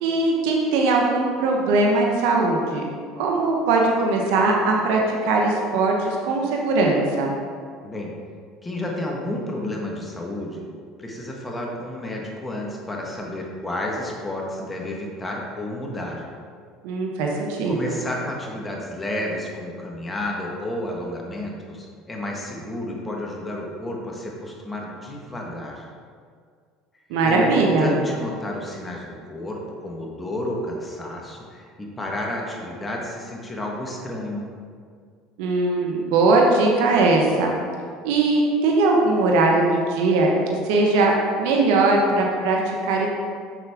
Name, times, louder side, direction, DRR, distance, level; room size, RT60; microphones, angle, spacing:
voice 1, 0.0-2.8 3.2-7.3 16.8-17.9 27.1-27.9 35.4-37.5 38.0-40.3 40.6-43.1, right 3 dB, 80° right, 0 dB, 1.0 m, -20 dB
voice 2, 8.6-10.7 11.0-16.2 17.6-25.8 27.2-34.4, left 1 dB, 15° left, -1 dB, 1.3 m, -31 dB
7.2 x 6.0 x 3.5 m, 2.1 s
supercardioid pair, 105°, 0 cm